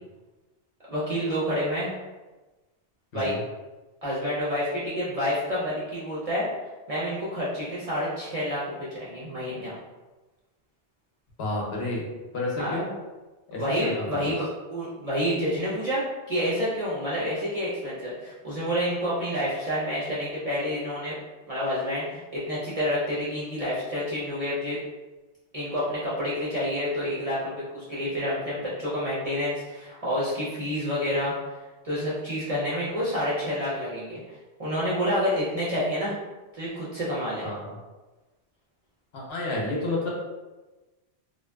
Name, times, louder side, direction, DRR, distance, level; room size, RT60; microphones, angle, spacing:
voice 1, 0.9-1.9 3.1-3.4 4.0-6.5 6.9-9.8 12.6-12.8 13.6-21.2 21.5-24.8 25.5-31.3 31.8-36.2 36.5-37.5, equal, 45° right, -9 dB, 0.5 m, -28 dB
voice 2, 11.4-12.0 12.3-12.9 13.5-14.3 37.4-37.7 39.1-40.1, left 2 dB, 65° left, -3 dB, 0.8 m, -30 dB
2.5 x 2.2 x 2.2 m, 1.2 s
omnidirectional pair, 1.2 m